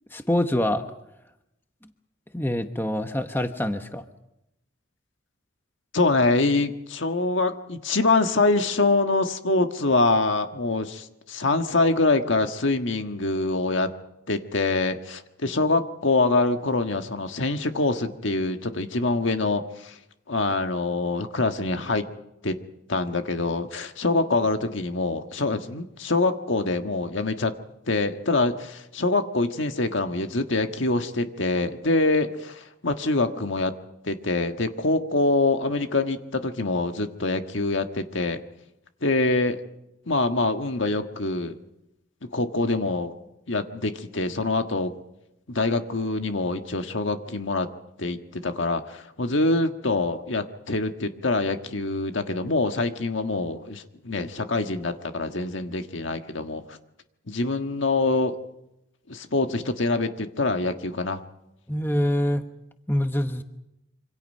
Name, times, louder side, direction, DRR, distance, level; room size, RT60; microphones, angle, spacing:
voice 1, 0.1-0.8 2.3-4.0 61.7-62.4 62.9-63.4, left 1 dB, 10° left, 7 dB, 1.0 m, -25 dB
voice 2, 5.9-13.9 14.3-20.0 20.3-22.0 22.4-22.6 22.9-27.5 27.9-33.7 34.0-38.4 39.0-39.6 40.1-41.6 42.2-43.1 43.5-44.9 45.5-47.7 48.0-56.8 57.3-58.4 59.1-61.2, left 2 dB, 70° left, 7 dB, 1.5 m, -25 dB
26.5 x 25.5 x 5.5 m, 0.87 s
head